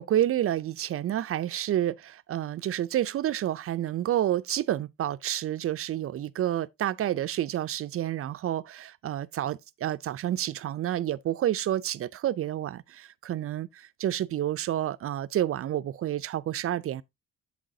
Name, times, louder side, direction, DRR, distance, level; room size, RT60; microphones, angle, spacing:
voice 1, 0.0-17.0, right 12 dB, 50° right, 0.4 m, -29 dB
7.5 x 7.4 x 2.6 m
cardioid pair, 90°, 30 cm